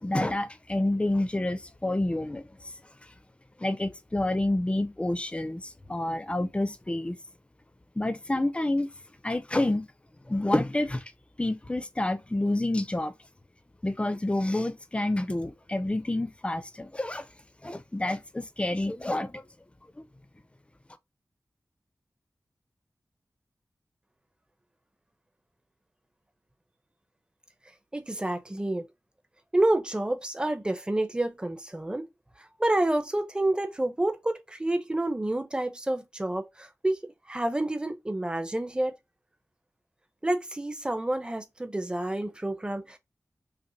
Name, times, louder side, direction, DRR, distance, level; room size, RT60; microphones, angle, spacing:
voice 1, 0.0-2.4 3.6-7.2 8.0-8.9 9.2-9.9 10.3-11.0 11.4-13.1 13.8-17.2 17.6-19.4 20.0-20.1, left 1 dB, 20° left, 0.6 m, -28 dB
voice 2, 27.9-28.8 29.5-32.1 32.6-37.0 37.3-38.9 40.2-43.0, right 1 dB, 15° right, 0.8 m, -28 dB
5.8 x 2.1 x 2.8 m
wide cardioid pair, 75°, 6 cm